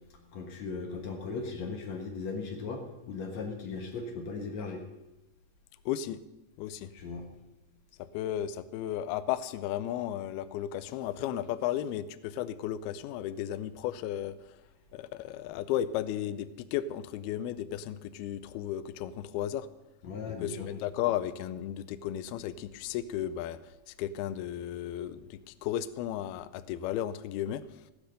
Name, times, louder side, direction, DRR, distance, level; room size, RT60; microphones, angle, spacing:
voice 1, 0.3-4.8 6.9-7.3 20.0-20.7, left 4 dB, 65° left, 2 dB, 1.7 m, -37 dB
voice 2, 5.9-6.2 6.6-6.9 8.1-14.4 14.9-19.7 20.4-23.6 23.9-27.6, left 11 dB, 85° left, 12 dB, 2.2 m, -34 dB
15.5 x 10.5 x 6.6 m, 0.99 s
omnidirectional pair, 5.2 m